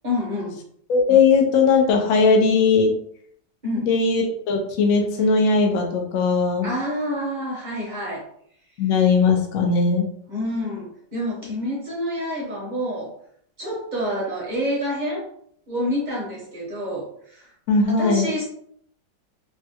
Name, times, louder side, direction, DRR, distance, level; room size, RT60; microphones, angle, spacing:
voice 1, 0.0-0.6 3.6-3.9 6.6-8.2 10.3-13.1 13.6-15.3 15.7-17.5 17.9-18.4, equal, 35° right, -4 dB, 0.7 m, -28 dB
voice 2, 0.9-2.9 3.8-6.7 8.8-10.1 17.7-18.3, left 4 dB, 70° left, 2 dB, 0.8 m, -19 dB
3.5 x 2.1 x 2.7 m, 0.64 s
omnidirectional pair, 1.9 m